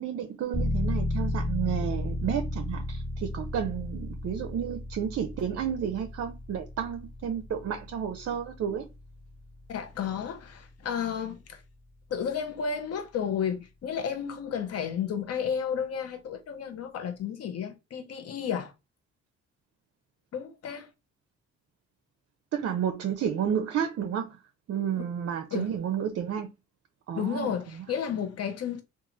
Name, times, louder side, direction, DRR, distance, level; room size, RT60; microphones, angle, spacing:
voice 1, 0.0-8.9 22.5-24.4 24.7-26.5 27.1-27.8, right 8 dB, 55° right, 0.5 m, -31 dB
sound 1, 0.5-11.1, left 1 dB, 40° left, 1.5 m, -34 dB
voice 2, 9.7-11.6 12.1-18.7 20.3-20.9 25.5-25.7 27.2-28.8, left 7 dB, 55° left, 0.7 m, -32 dB
2.9 x 2.4 x 2.4 m
cardioid pair, 90°, 30 cm